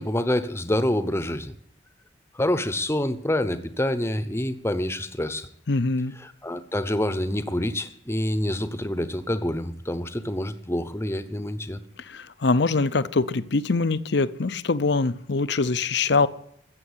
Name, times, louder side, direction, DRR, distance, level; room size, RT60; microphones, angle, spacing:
voice 1, 0.0-1.5 2.3-5.5 6.2-11.8, left 1 dB, 15° left, 0.9 m, -27 dB
voice 2, 5.7-6.1 12.1-16.3, left 3 dB, 60° left, 0.7 m, -23 dB
14.5 x 7.8 x 9.6 m
head